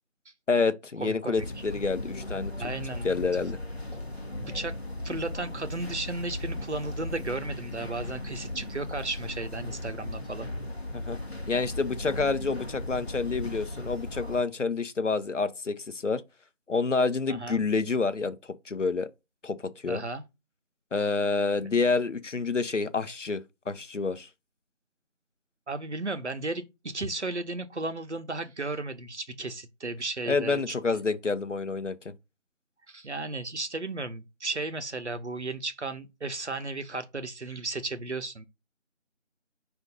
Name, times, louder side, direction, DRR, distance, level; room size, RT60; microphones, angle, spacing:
voice 1, 0.5-2.7 3.0-3.6 10.9-11.2 11.5-16.2 16.7-18.4 18.7-19.1 19.4-19.6 19.8-20.0 20.9-24.3 30.3-32.0, left 4 dB, 70° left, 0.7 m, -28 dB
voice 2, 1.0-1.4 2.6-3.1 4.3-4.7 5.0-10.5 17.3-17.6 19.9-20.2 21.6-21.7 25.7-30.7 32.9-38.5, right 2 dB, 65° right, 0.7 m, -34 dB
sound 1, 1.4-14.4, left 1 dB, 55° left, 1.1 m, -37 dB
5.2 x 2.6 x 3.7 m
figure-of-eight pair, 180°, 38 cm